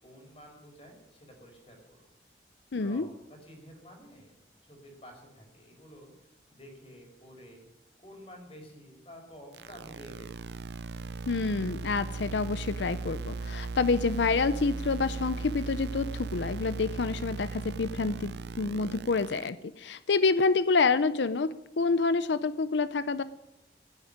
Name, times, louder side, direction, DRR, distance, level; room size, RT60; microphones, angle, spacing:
voice 1, 0.0-2.1 2.8-4.3 4.6-7.7 8.0-10.5, equal, 35° left, 3 dB, 5.0 m, -51 dB
voice 2, 2.7-3.1 11.3-23.2, left 4 dB, 90° left, 14 dB, 0.6 m, -28 dB
sound 1, 9.5-19.5, right 3 dB, 75° right, 0.5 m, -37 dB
16.0 x 8.9 x 9.9 m, 0.89 s
head